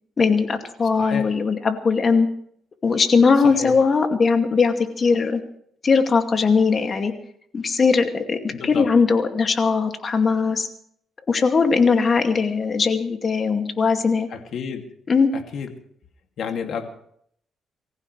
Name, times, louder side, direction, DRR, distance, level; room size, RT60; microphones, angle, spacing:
voice 1, 0.2-2.3 2.8-5.4 5.8-7.1 7.5-10.7 11.3-14.3 15.1-15.3, left 5 dB, 40° left, 5 dB, 2.3 m, -19 dB
voice 2, 1.0-1.3 3.4-3.8 8.5-8.9 14.3-14.8 15.3-15.7 16.4-16.9, left 7 dB, 65° left, 4 dB, 2.5 m, -30 dB
24.5 x 15.0 x 3.3 m, 0.66 s
cardioid pair, 90°, 0 cm